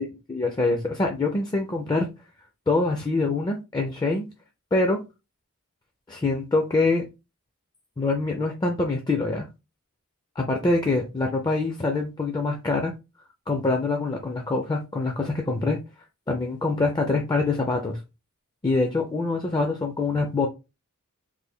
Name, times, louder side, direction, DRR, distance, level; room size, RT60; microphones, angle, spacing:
voice 1, 0.0-2.1 2.7-4.3 4.7-5.0 6.1-7.0 8.0-9.5 10.4-12.9 13.5-15.8 16.3-18.0 18.6-20.5, left 3 dB, 20° left, 0.4 m, -25 dB
3.3 x 2.2 x 3.5 m
head